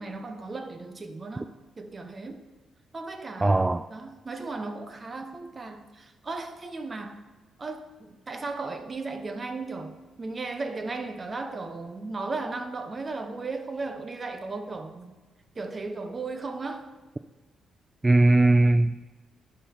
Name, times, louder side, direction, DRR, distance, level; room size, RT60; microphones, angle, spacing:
voice 1, 0.0-2.4 2.9-7.2 7.6-15.2 15.5-16.9, right 3 dB, 35° right, 1.0 m, -36 dB
voice 2, 3.4-3.9 18.0-19.0, right 2 dB, 20° right, 0.3 m, -19 dB
11.0 x 3.7 x 4.6 m
supercardioid pair, 65°, 0 cm